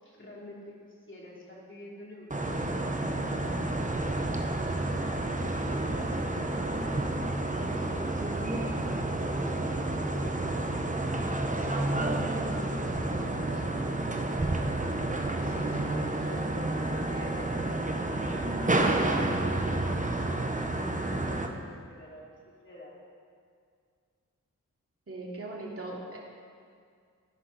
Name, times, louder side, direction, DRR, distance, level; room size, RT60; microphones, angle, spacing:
voice 1, 0.0-3.6 5.4-7.2 7.5-12.0 12.5-13.7 14.8-16.8 17.1-18.9 19.5-19.8 21.1-22.3 22.6-23.0, left 1 dB, 35° left, -4 dB, 3.4 m, -47 dB
sound 1, 2.3-21.5, right 2 dB, 25° right, 1.1 m, -30 dB
voice 2, 25.1-26.2, right 2 dB, 45° right, -4 dB, 3.0 m, -39 dB
14.0 x 10.0 x 4.3 m, 2.2 s
cardioid pair, 50°, 33 cm